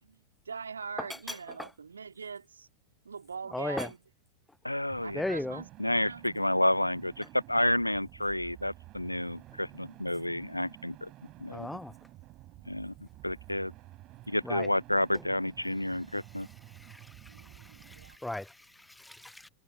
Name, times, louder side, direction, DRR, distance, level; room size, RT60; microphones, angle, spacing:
voice 1, 0.0-2.7 3.0-4.0 5.0-6.3 17.3-18.2, right 5 dB, 75° right, 2.0 m, -43 dB
voice 2, 1.3-1.7 3.5-3.9 5.1-5.6 11.5-11.9 14.4-14.7 16.4-19.5, left 1 dB, 5° left, 0.3 m, -37 dB
voice 3, 4.6-5.2 5.8-11.1 11.4-11.7 12.7-12.9 13.2-13.7 14.3-16.5, left 1 dB, 85° left, 0.4 m, -30 dB
sound 1, 4.9-18.2, right 17 dB, 35° right, 7.7 m, -52 dB
figure-of-eight pair, 90°, 0 cm